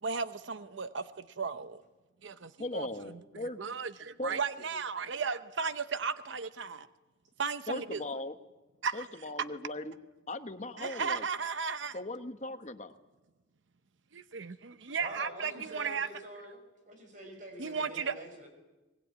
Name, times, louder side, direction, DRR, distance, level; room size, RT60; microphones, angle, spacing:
voice 1, 0.0-1.8 2.2-6.9 7.4-8.0 8.8-9.1 10.8-12.0 14.1-16.1 17.6-18.1, right 5 dB, 75° right, 12 dB, 0.8 m, -35 dB
voice 2, 2.6-3.6 4.2-4.4 7.7-8.3 8.9-9.9 10.3-11.2 11.9-12.9, left 2 dB, 35° left, 8 dB, 1.2 m, -38 dB
voice 3, 15.0-16.6 16.8-18.5, right 1 dB, 40° right, 5 dB, 5.7 m, -45 dB
24.0 x 20.0 x 9.5 m, 1.1 s
head